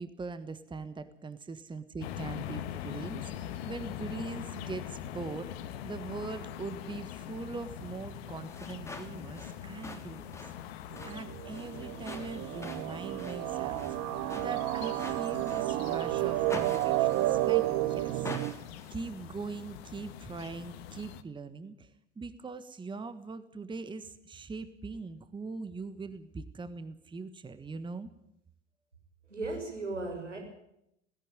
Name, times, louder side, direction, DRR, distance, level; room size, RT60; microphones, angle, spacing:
voice 1, 0.0-5.5 5.8-10.4 11.1-14.0 14.3-18.6 18.9-28.1, right 4 dB, 15° right, 12 dB, 1.4 m, -41 dB
sound 1, 2.0-21.2, left 10 dB, 60° left, 1.6 m, -43 dB
sound 2, 8.4-16.0 16.5-17.8 18.2-19.0, left 2 dB, 10° left, 3.5 m, -46 dB
sound 3, 10.9-18.5, right 17 dB, 40° right, 1.0 m, -31 dB
voice 2, 29.3-30.4, right 2 dB, 85° right, 3 dB, 6.2 m, -36 dB
17.5 x 17.0 x 9.1 m, 0.79 s
figure-of-eight pair, 75°, 35 cm